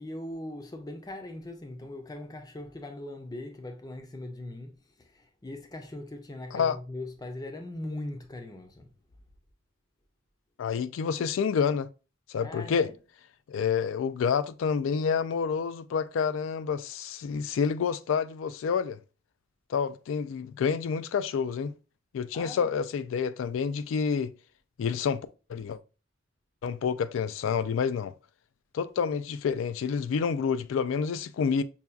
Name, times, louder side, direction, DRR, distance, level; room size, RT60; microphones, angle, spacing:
voice 1, 0.0-8.9 12.4-12.9 22.3-22.7, left 1 dB, 20° left, 0.5 m, -40 dB
voice 2, 10.6-11.9 12.3-12.9 13.5-19.0 19.7-21.7 22.1-24.3 24.8-25.2 25.5-25.8 26.6-28.1 28.7-31.6, left 6 dB, 80° left, 0.3 m, -28 dB
5.5 x 2.3 x 2.3 m
head